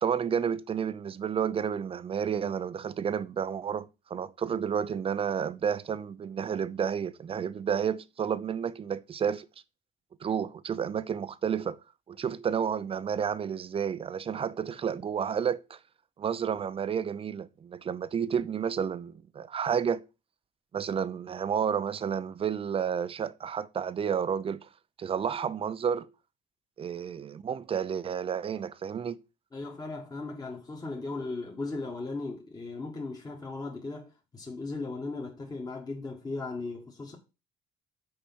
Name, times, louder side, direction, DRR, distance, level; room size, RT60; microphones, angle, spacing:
voice 1, 0.0-9.4 10.2-11.8 12.1-15.8 16.2-20.0 20.7-24.7 25.0-26.1 26.8-29.2, right 7 dB, 35° right, 0.6 m, -31 dB
voice 2, 29.5-37.1, left 3 dB, 20° left, 1.8 m, -37 dB
6.4 x 4.9 x 6.2 m
cardioid pair, 110°, 17 cm